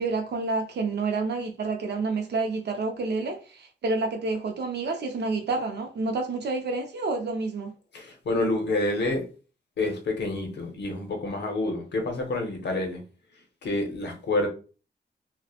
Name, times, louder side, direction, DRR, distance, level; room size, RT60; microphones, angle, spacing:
voice 1, 0.0-7.7, right 3 dB, 60° right, 0.4 m, -29 dB
voice 2, 7.9-9.2 9.8-13.0 13.6-14.5, left 2 dB, 65° left, 0.7 m, -28 dB
2.7 x 2.0 x 2.3 m
wide cardioid pair, 140°, 19 cm